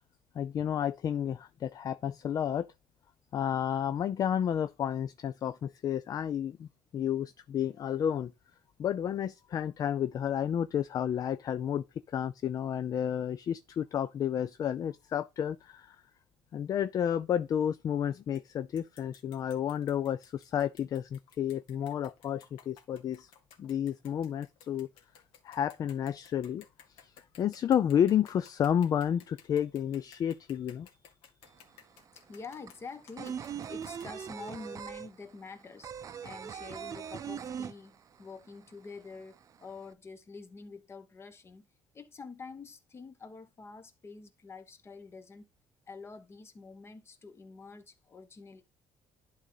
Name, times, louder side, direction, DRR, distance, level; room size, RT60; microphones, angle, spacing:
voice 1, 0.3-2.7 3.3-8.3 8.8-16.0 16.5-23.3 23.6-24.9 25.4-26.6 27.0-30.9, left 9 dB, 45° left, 0.5 m, -31 dB
sound 1, 18.4-18.5 18.8-34.6, left 8 dB, 85° left, 1.9 m, -58 dB
sound 2, 31.4-31.5 31.8-38.4 38.6-38.7 39.0-39.8, right 8 dB, 40° right, 0.6 m, -40 dB
voice 2, 32.1-35.9 36.2-41.6 41.9-45.5 45.9-48.6, left 4 dB, 30° left, 1.2 m, -47 dB
11.0 x 4.0 x 4.0 m
cardioid pair, 135°, 9 cm